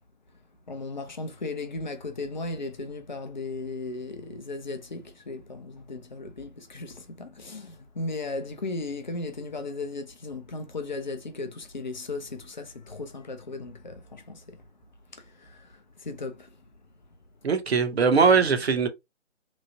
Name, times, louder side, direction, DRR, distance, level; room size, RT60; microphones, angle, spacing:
voice 1, 0.7-14.6 15.1-16.5 18.1-18.6, left 3 dB, 40° left, 0.5 m, -36 dB
voice 2, 17.4-18.9, right 5 dB, 55° right, 0.7 m, -21 dB
3.0 x 2.0 x 2.6 m
figure-of-eight pair, 140°, 37 cm